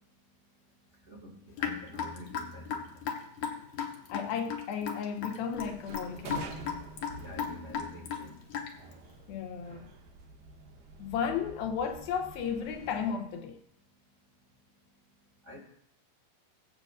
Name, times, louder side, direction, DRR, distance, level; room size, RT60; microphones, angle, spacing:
voice 1, 1.1-2.9 7.2-8.4 15.5-15.6, equal, 25° right, 1.9 m, -46 dB
Raindrop / Drip, 1.6-8.9, left 7 dB, 65° left, 2.1 m, -36 dB
voice 2, 4.1-6.5 9.3-9.9 11.0-13.6, left 7 dB, 80° left, 2.7 m, -34 dB
sound 1, 5.5-13.1, right 3 dB, 85° right, 3.2 m, -48 dB
22.0 x 7.7 x 2.6 m
omnidirectional pair, 4.3 m